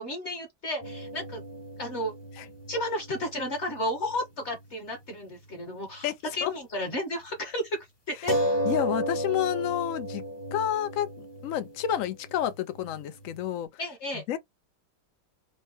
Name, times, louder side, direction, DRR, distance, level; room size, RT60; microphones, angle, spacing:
voice 1, 0.0-1.4 1.8-2.1 2.7-7.8 8.1-8.3 13.8-14.2, left 1 dB, 45° left, 1.3 m, -33 dB
sound 1, 0.8-4.7 4.9-5.1 8.3-13.5, equal, 20° left, 0.8 m, -34 dB
voice 2, 6.0-6.5 8.6-10.2 10.5-11.1 11.4-13.7 14.3-14.4, left 11 dB, 65° left, 0.8 m, -29 dB
4.5 x 2.2 x 2.7 m
omnidirectional pair, 1.8 m